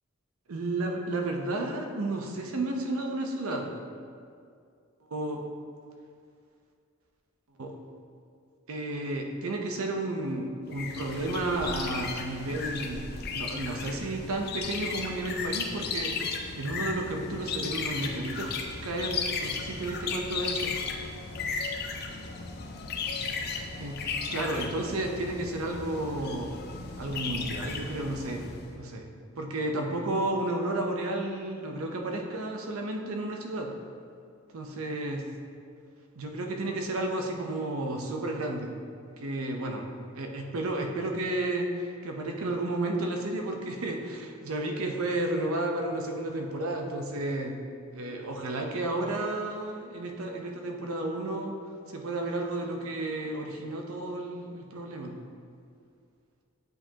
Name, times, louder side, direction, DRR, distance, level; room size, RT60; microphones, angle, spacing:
voice 1, 0.5-3.7 5.1-5.4 7.6-7.7 8.7-18.5 18.8-20.7 23.8-24.0 24.3-26.5 27.0-28.5 28.7-29.0 29.4-33.7 34.5-35.2 36.2-38.7 39.2-39.9 40.1-47.6 47.9-51.6 51.9-55.1, right 2 dB, 85° right, 3 dB, 0.7 m, -32 dB
sound 1, 10.7-28.7, left 4 dB, 45° left, 0.5 m, -35 dB
7.7 x 4.9 x 2.9 m, 2.3 s
head